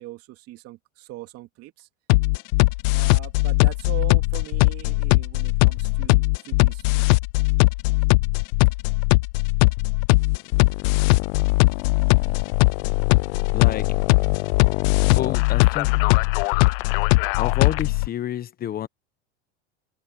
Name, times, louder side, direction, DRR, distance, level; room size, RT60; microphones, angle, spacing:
voice 1, 0.0-1.9 2.9-7.2, right 16 dB, 50° right, 2.8 m, -40 dB
sound 1, 2.1-18.1, left 26 dB, 60° left, 0.5 m, -19 dB
voice 2, 13.5-13.9 15.0-16.1 17.4-18.9, left 11 dB, 30° left, 1.1 m, -29 dB
supercardioid pair, 120°, 32 cm